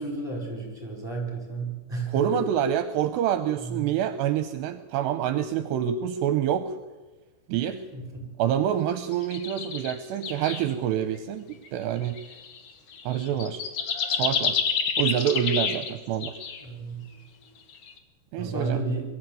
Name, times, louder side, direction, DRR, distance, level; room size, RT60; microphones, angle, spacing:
voice 1, 0.0-2.2 3.6-3.9 7.9-8.3 16.6-17.0 18.4-19.0, right 3 dB, 5° right, 2 dB, 4.8 m, -32 dB
voice 2, 2.1-6.8 7.5-7.8 8.4-12.2 13.1-13.6 14.1-14.6 15.0-16.4 18.3-18.8, right 9 dB, 80° right, 11 dB, 2.8 m, -27 dB
sound 1, 9.1-9.9 10.2-10.7 11.5-11.7 12.0-15.9 16.2-16.6 17.7-18.0, left 6 dB, 65° left, 1.4 m, -29 dB
22.5 x 13.0 x 9.1 m, 1.2 s
omnidirectional pair, 5.1 m